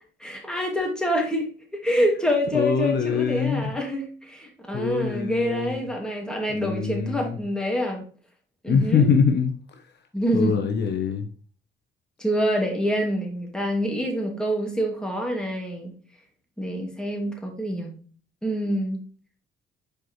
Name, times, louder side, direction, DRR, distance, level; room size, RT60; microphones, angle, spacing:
voice 1, 0.2-8.1 8.6-9.1 10.1-10.6 12.2-15.9 16.6-18.0 18.4-19.0, equal, 5° left, 2.3 m, -26 dB
voice 2, 2.5-3.6 4.7-5.8 6.5-7.4 8.7-9.8 10.3-11.3, left 6 dB, 60° left, 0.9 m, -24 dB
6.6 x 4.8 x 3.1 m
cardioid pair, 90°, 20 cm